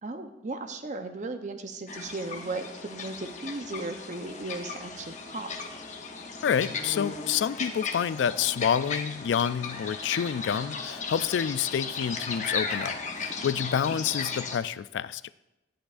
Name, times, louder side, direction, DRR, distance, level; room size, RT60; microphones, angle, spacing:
voice 1, 0.0-5.5 13.5-13.7, right 2 dB, 40° right, 7 dB, 0.7 m, -36 dB
sound 1, 1.9-14.6, left 4 dB, 40° left, 0.8 m, -36 dB
voice 2, 6.4-15.2, left 8 dB, 75° left, 16 dB, 0.3 m, -28 dB
11.0 x 10.0 x 2.5 m, 0.95 s
head